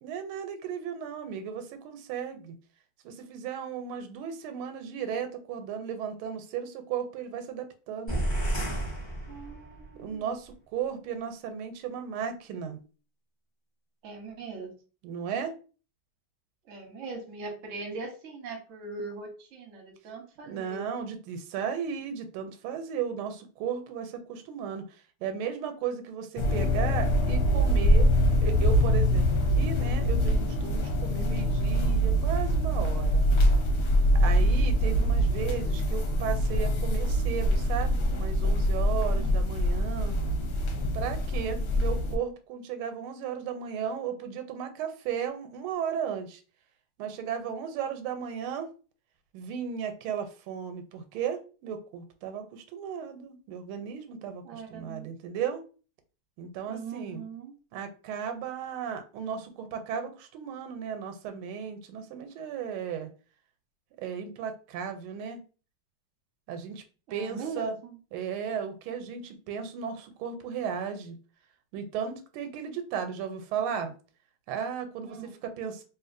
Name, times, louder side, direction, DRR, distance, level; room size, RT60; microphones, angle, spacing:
voice 1, 0.0-2.5 3.0-8.2 10.0-12.8 15.0-15.5 20.5-24.8 25.2-28.1 28.4-33.3 34.2-40.2 40.9-46.4 47.0-48.7 49.3-55.6 56.4-57.2 57.7-63.1 64.0-65.4 66.5-66.8 67.1-67.8 68.1-71.2 71.7-73.9 74.5-75.8, right 7 dB, 90° right, 7 dB, 1.5 m, -35 dB
sound 1, 8.1-9.9, right 1 dB, 25° left, 0.6 m, -31 dB
voice 2, 9.3-10.3 14.0-14.7 16.6-20.8 34.8-35.1 39.2-39.3 54.4-55.1 56.7-57.6 67.1-68.0 75.0-75.3, right 4 dB, 55° right, 2 dB, 0.9 m, -41 dB
sound 2, 26.4-42.2, equal, 65° left, 1.2 m, -24 dB
3.0 x 2.7 x 2.5 m, 0.36 s
omnidirectional pair, 2.3 m